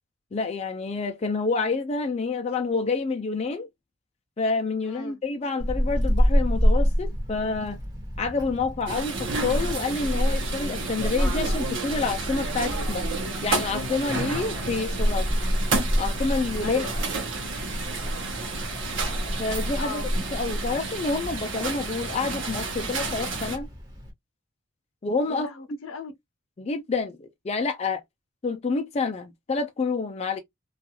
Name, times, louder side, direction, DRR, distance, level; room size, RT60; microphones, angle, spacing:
voice 1, 0.3-3.7 4.4-7.8 8.2-13.1 13.4-15.3 16.0-16.8 19.4-20.0 20.3-23.7 25.0-25.5 26.6-28.0 28.4-30.4, left 4 dB, 30° left, 0.3 m, -28 dB
voice 2, 4.8-5.2 16.6-17.3 19.8-20.1 25.2-26.1, left 3 dB, 70° left, 0.6 m, -38 dB
Wind, 5.6-24.1, equal, 20° right, 1.2 m, -28 dB
sound 1, 8.9-23.6, right 3 dB, 65° right, 0.9 m, -31 dB
2.4 x 2.3 x 2.7 m
head